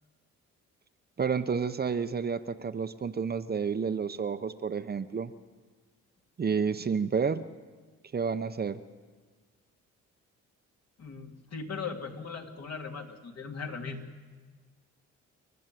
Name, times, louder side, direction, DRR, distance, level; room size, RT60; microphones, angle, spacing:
voice 1, 1.2-5.3 6.4-7.5 8.1-8.8, right 6 dB, 30° right, 10 dB, 0.8 m, -30 dB
voice 2, 11.0-14.0, left 5 dB, 55° left, 2 dB, 2.7 m, -39 dB
29.0 x 10.5 x 9.1 m, 1.4 s
cardioid pair, 90°, 30 cm